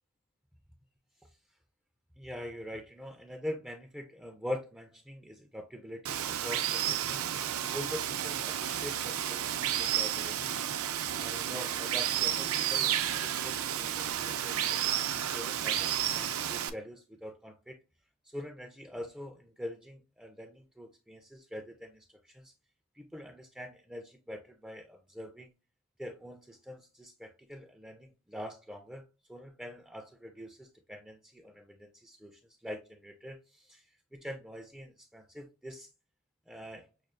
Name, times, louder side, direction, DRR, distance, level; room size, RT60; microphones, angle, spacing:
voice 1, 2.2-7.3 7.7-10.5 11.2-17.8 18.2-22.5 22.9-25.5 26.0-29.0 29.3-33.9 34.1-35.9 36.5-36.9, left 1 dB, 5° right, 0.3 m, -44 dB
Water, 6.1-16.7, right 10 dB, 70° right, 0.4 m, -31 dB
6.0 x 2.3 x 2.4 m
head